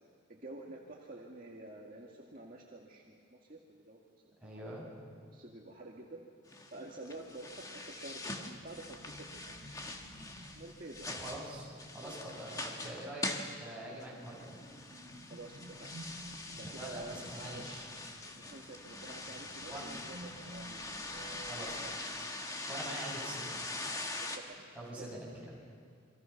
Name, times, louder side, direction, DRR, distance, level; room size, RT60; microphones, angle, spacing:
voice 1, 0.3-4.0 4.4-4.7 5.3-6.2 6.7-9.5 10.6-11.1 15.3-15.9 16.6-17.6 18.3-21.9 24.2-24.6 25.0-25.2, right 2 dB, 45° right, -2 dB, 1.9 m, -49 dB
voice 2, 4.4-4.9 11.1-11.7 11.9-13.3 13.6-14.6 16.5-17.9 19.7-19.8 21.4-21.8 22.7-23.6 24.7-25.3, right 1 dB, 5° right, -6 dB, 7.7 m, -44 dB
sound 1, 6.5-24.4, left 2 dB, 15° left, 1.5 m, -43 dB
sound 2, 7.1-12.3 13.2-22.5, equal, 75° right, 2.4 m, -54 dB
28.5 x 23.5 x 5.9 m, 2.3 s
head